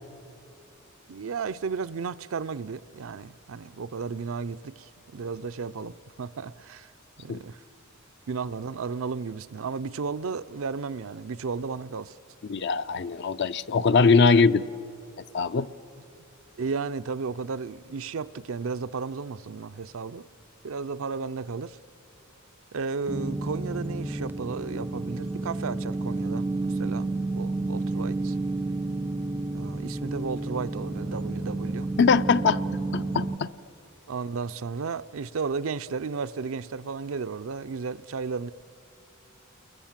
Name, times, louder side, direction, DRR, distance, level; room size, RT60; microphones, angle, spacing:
voice 1, 1.1-6.9 7.2-7.6 8.3-12.2 16.6-20.3 20.6-21.8 22.7-28.4 29.5-31.9 34.1-38.5, right 5 dB, 70° right, 0.5 m, -34 dB
voice 2, 12.5-14.6 15.3-15.7 32.0-32.6 32.9-33.5, left 4 dB, 55° left, 0.5 m, -21 dB
sound 1, 23.1-33.4, right 2 dB, 10° right, 0.5 m, -31 dB
29.0 x 21.5 x 7.4 m
head